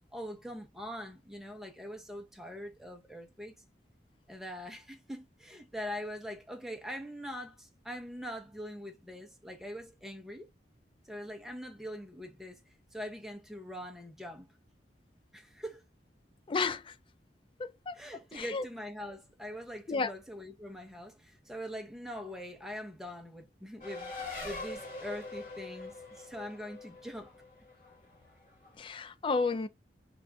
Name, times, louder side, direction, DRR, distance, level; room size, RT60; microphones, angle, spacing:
voice 1, 0.1-3.6 4.3-10.5 11.0-12.6 12.9-14.5 15.3-15.8 17.9-27.3 29.5-29.6, equal, ahead, 0.7 m, -43 dB
voice 2, 16.5-16.8 17.6-17.9 18.4-18.6 19.9-20.1 28.8-29.7, left 4 dB, 30° left, 0.3 m, -31 dB
Race car auto racing, 23.8-28.7, left 2 dB, 50° left, 1.7 m, -43 dB
3.4 x 2.5 x 2.4 m
head